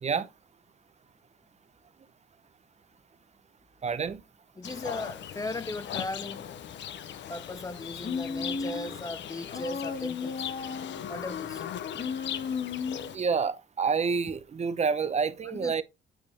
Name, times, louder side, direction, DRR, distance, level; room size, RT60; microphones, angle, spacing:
voice 1, 3.8-4.2 13.1-15.8, right 5 dB, 35° right, 0.6 m, -28 dB
Livestock farm animals working animals, 4.6-13.2, left 9 dB, 65° left, 0.7 m, -39 dB
voice 2, 4.6-6.5 7.3-10.5 11.1-11.7 15.4-15.8, left 2 dB, 15° left, 0.4 m, -37 dB
Human voice, 8.0-9.0 9.5-11.1 11.9-13.2, left 5 dB, 45° left, 1.2 m, -34 dB
8.9 x 3.4 x 3.3 m
cardioid pair, 90°, 20 cm